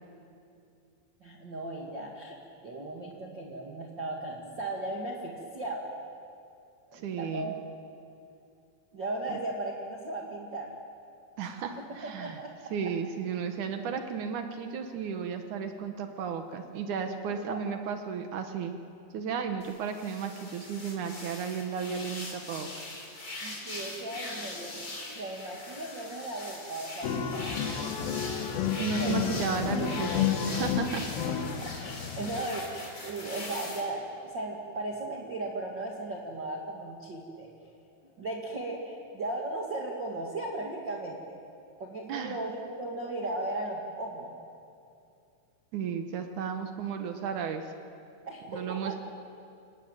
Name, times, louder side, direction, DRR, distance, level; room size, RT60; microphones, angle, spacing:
voice 1, 1.2-5.9 6.9-7.6 8.9-10.7 11.7-11.8 12.2-12.5 17.3-17.6 23.4-24.8 25.1-28.1 28.5-29.2 31.6-37.5 38.2-41.4 41.8-44.3 48.3-49.0, right 2 dB, 40° right, -1 dB, 1.6 m, -37 dB
voice 2, 6.9-7.5 9.3-9.4 11.4-12.4 12.7-18.7 19.1-22.9 28.8-31.1 42.1-42.4 45.7-47.7 48.5-49.0, right 6 dB, 75° right, 7 dB, 1.8 m, -34 dB
sound 1, 19.6-33.8, left 2 dB, 20° left, 3.7 m, -41 dB
sound 2, 27.0-32.4, left 8 dB, 65° left, 2.6 m, -31 dB
29.0 x 18.5 x 9.1 m, 2.5 s
omnidirectional pair, 5.2 m